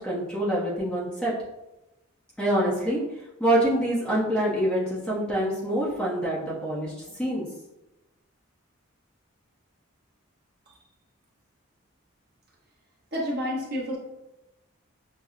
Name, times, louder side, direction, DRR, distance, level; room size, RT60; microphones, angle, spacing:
voice 1, 0.0-1.3 2.4-3.0 3.4-7.4, right 1 dB, 5° left, -7 dB, 0.7 m, -26 dB
voice 2, 13.1-14.0, equal, 45° right, -4 dB, 0.9 m, -29 dB
5.5 x 2.0 x 2.4 m, 0.96 s
head